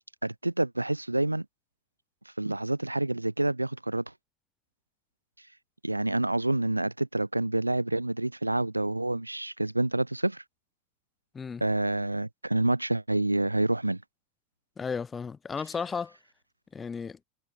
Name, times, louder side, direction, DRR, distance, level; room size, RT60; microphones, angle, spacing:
voice 1, 0.2-1.4 2.4-4.0 5.8-10.4 11.6-14.0, right 1 dB, 90° right, 0.9 m, -28 dB
voice 2, 14.8-16.2 16.7-17.2, left 5 dB, 20° left, 2.1 m, -34 dB
figure-of-eight pair, 75°, 0 cm